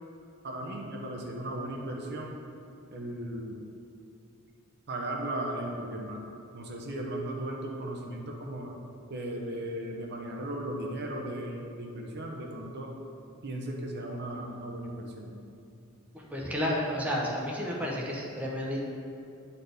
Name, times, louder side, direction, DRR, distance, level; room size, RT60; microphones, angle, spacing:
voice 1, 0.4-2.3 2.9-3.6 4.9-6.2 6.5-8.7 9.1-12.9 13.4-15.3, right 1 dB, 50° right, 0 dB, 0.7 m, -36 dB
voice 2, 16.1-18.8, equal, 5° right, -4 dB, 0.8 m, -31 dB
9.2 x 4.2 x 3.4 m, 2.8 s
head